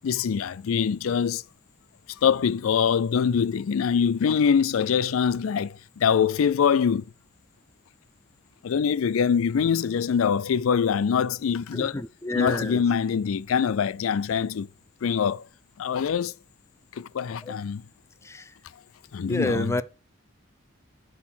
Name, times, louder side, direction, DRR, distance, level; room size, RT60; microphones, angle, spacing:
voice 1, 0.0-1.4 2.2-7.0 8.6-11.9 12.3-14.7 15.0-15.4 15.8-16.3 17.0-17.8 19.1-19.8, left 7 dB, 85° left, 0.4 m, -24 dB
voice 2, 11.7-12.8 17.4-17.6 18.2-18.6 19.3-19.8, left 2 dB, 15° left, 0.4 m, -29 dB
9.9 x 3.9 x 4.4 m
head